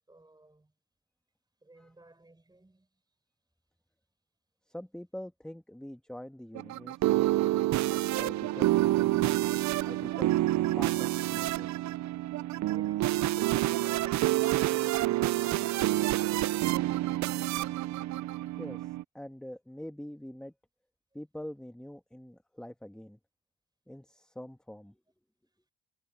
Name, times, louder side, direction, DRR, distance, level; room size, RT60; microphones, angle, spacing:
voice 1, 0.1-0.7 1.6-3.0, right 2 dB, 15° right, 5.1 m, -55 dB
voice 2, 4.7-7.2 8.2-9.4 9.8-10.4 10.7-11.7 18.6-20.5 21.1-23.2 23.9-25.0, left 1 dB, 5° left, 1.6 m, -44 dB
sound 1, 6.6-19.0, right 16 dB, 70° right, 0.5 m, -28 dB
cardioid pair, 90°, 30 cm